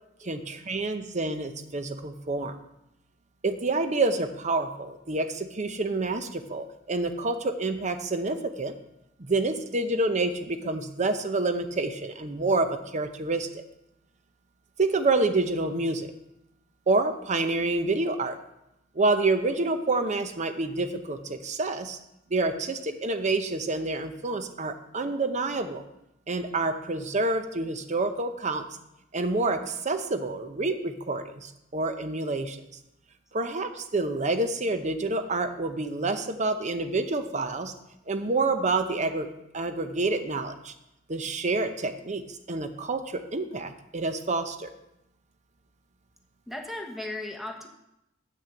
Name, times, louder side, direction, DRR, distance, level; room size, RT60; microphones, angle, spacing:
voice 1, 0.2-2.5 3.4-8.7 9.2-13.6 14.8-16.1 16.9-18.4 18.9-22.0 22.3-25.8 26.3-28.6 29.1-32.6 33.3-37.7 38.1-39.3 39.5-40.7 41.1-44.7, right 3 dB, 35° right, 8 dB, 0.8 m, -28 dB
voice 2, 46.5-47.7, left 2 dB, ahead, 3 dB, 1.1 m, -36 dB
8.6 x 6.3 x 7.7 m, 0.85 s
head